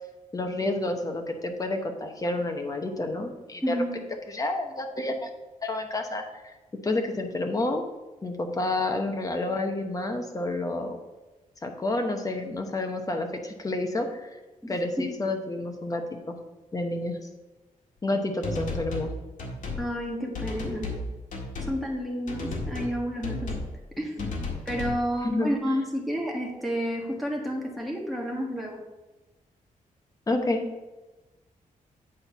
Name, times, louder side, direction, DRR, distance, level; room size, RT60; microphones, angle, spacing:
voice 1, 0.3-3.7 4.3-5.3 5.6-6.5 6.8-7.8 8.2-11.0 11.6-14.3 14.7-16.4 16.7-17.2 18.0-19.1 24.2-24.3 25.2-25.5 30.3-30.6, left 2 dB, 25° left, 4 dB, 1.0 m, -29 dB
voice 2, 3.6-4.0 14.6-15.2 19.8-20.9 21.7-23.5 24.0-24.2 24.6-28.8, equal, ahead, -2 dB, 1.6 m, -30 dB
sound 1, 18.4-19.1 19.4-19.8 20.3-21.0 21.3-21.7 22.3-22.9 23.2-23.7 24.2-25.0, left 3 dB, 65° left, 1.8 m, -33 dB
8.8 x 4.4 x 5.5 m, 1.1 s
wide cardioid pair, 140°, 14 cm